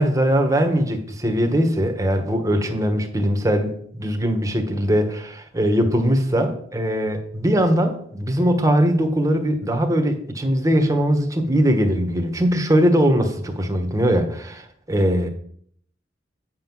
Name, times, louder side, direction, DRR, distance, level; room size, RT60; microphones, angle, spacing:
voice 1, 0.0-5.1 5.5-15.3, equal, 20° right, 5 dB, 1.2 m, -20 dB
8.7 x 5.6 x 6.0 m, 0.64 s
head